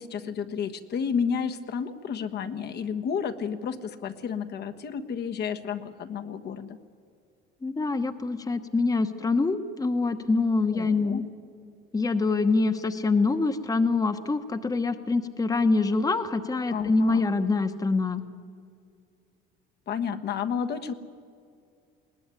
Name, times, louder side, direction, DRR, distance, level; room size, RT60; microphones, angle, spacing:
voice 1, 0.0-6.8 10.7-11.2 16.7-17.3 19.9-20.9, left 6 dB, 55° left, 8 dB, 1.4 m, -31 dB
voice 2, 7.6-11.2 11.9-18.2, left 3 dB, 15° left, 9 dB, 1.2 m, -25 dB
21.0 x 18.0 x 9.8 m, 2.2 s
supercardioid pair, 95°, 20 cm